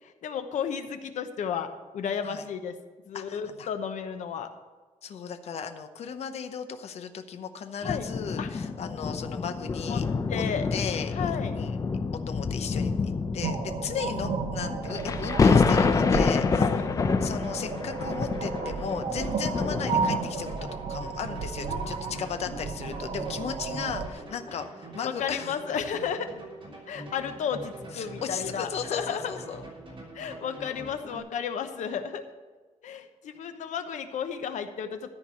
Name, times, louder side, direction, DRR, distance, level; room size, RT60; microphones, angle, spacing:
voice 1, 0.0-2.8 3.1-4.5 7.8-8.0 8.4-8.5 9.9-10.0 10.3-10.7 11.1-11.6 16.5-16.9 21.6-22.1 22.5-22.6 25.0-26.3 26.9-29.3 30.1-32.2 32.8-35.1, left 7 dB, 85° left, 8 dB, 1.0 m, -33 dB
voice 2, 3.1-3.7 5.0-10.0 10.3-10.4 10.7-11.8 12.3-16.6 17.2-20.5 20.9-25.6 27.9-29.7, left 7 dB, 60° left, 8 dB, 0.8 m, -36 dB
sound 1, 7.8-20.6 21.3-21.5, left 4 dB, 30° left, 0.5 m, -27 dB
sound 2, 13.4-24.1, right 5 dB, 75° right, 0.9 m, -33 dB
sound 3, 17.0-31.2, right 1 dB, 45° right, 3.5 m, -44 dB
13.5 x 4.7 x 8.3 m, 1.4 s
wide cardioid pair, 175°, 12 cm